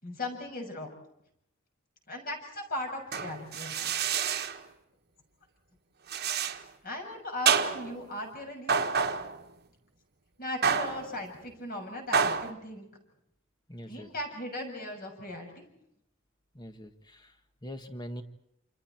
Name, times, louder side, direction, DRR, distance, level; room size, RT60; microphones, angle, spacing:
voice 1, 0.0-0.9 2.1-3.9 6.8-8.7 10.4-12.9 13.9-15.6, left 1 dB, 45° left, 3 dB, 6.6 m, -38 dB
sound 1, 3.1-4.6 6.1-6.6 7.5-8.0 8.7-9.4 10.6-11.1 12.1-12.5, right 6 dB, 50° right, 1.4 m, -28 dB
voice 2, 13.7-14.1 16.5-17.3 17.6-18.2, equal, 20° left, 7 dB, 1.7 m, -42 dB
28.5 x 27.5 x 4.5 m, 0.78 s
head